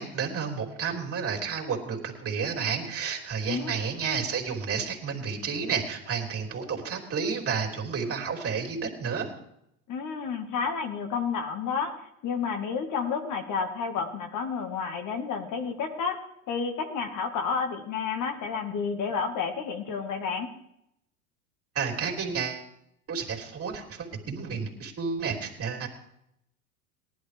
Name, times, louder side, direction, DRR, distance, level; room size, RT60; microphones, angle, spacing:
voice 1, 0.0-9.3 21.7-22.6 23.1-25.9, right 6 dB, 30° right, 0 dB, 3.2 m, -31 dB
voice 2, 3.5-3.8 9.9-11.9 12.2-16.2 16.5-20.5, left 5 dB, 45° left, 4 dB, 1.7 m, -30 dB
18.5 x 11.5 x 3.4 m, 0.78 s
hypercardioid pair, 85°, 43 cm